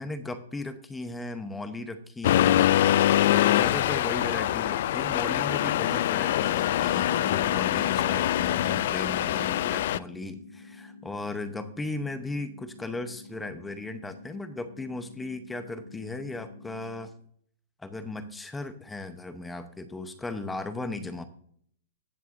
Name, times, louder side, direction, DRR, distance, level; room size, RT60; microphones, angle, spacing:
voice 1, 0.0-2.8 3.2-17.1 17.8-21.2, left 2 dB, 5° left, 10 dB, 0.8 m, -36 dB
Accelerating revving vroom, 2.2-10.0, left 12 dB, 50° left, 0.3 m, -24 dB
sound 1, 7.1-17.1, left 3 dB, 75° left, 1.6 m, -49 dB
18.0 x 6.8 x 2.6 m, 0.63 s
hypercardioid pair, 165°, 0 cm